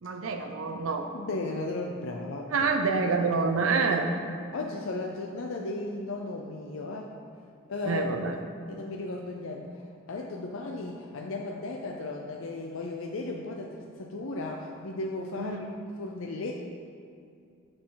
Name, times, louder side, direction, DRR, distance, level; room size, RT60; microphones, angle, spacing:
voice 1, 0.0-1.1 2.5-4.1 7.8-8.4 15.4-15.6, right 4 dB, 85° right, 5 dB, 0.6 m, -27 dB
voice 2, 1.1-2.7 4.5-7.1 7.7-8.1 8.7-15.6 16.0-16.5, left 2 dB, 75° left, 1 dB, 0.6 m, -35 dB
8.5 x 6.1 x 3.9 m, 2.5 s
head